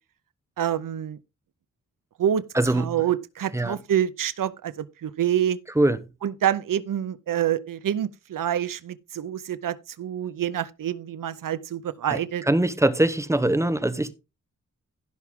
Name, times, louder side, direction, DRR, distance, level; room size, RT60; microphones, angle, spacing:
voice 1, 0.6-1.2 2.2-5.6 6.2-12.4, right 10 dB, 85° right, 0.7 m, -27 dB
voice 2, 2.6-2.9 3.5-3.7 5.8-6.0 12.1-12.2 12.5-14.1, right 1 dB, 10° right, 0.9 m, -22 dB
15.5 x 5.9 x 3.6 m
wide cardioid pair, 120°, 31 cm